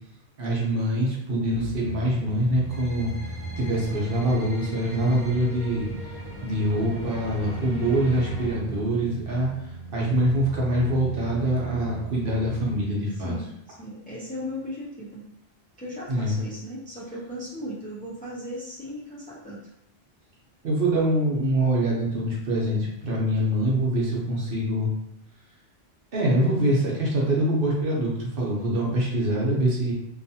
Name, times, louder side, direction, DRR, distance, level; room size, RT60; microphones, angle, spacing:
voice 1, 0.4-3.1 3.6-6.1 6.4-9.5 9.9-13.3 16.1-16.4 20.6-24.9 26.1-29.9, right 1 dB, 60° right, -3 dB, 0.9 m, -24 dB
sound 1, 1.3-12.9 13.3-13.4, right 4 dB, 80° left, 1.0 m, -39 dB
sound 2, 2.7-8.5, equal, 30° left, 0.7 m, -39 dB
voice 2, 13.8-15.3 15.8-19.7, equal, 15° left, -6 dB, 0.3 m, -37 dB
2.6 x 2.3 x 2.7 m, 0.79 s
omnidirectional pair, 1.1 m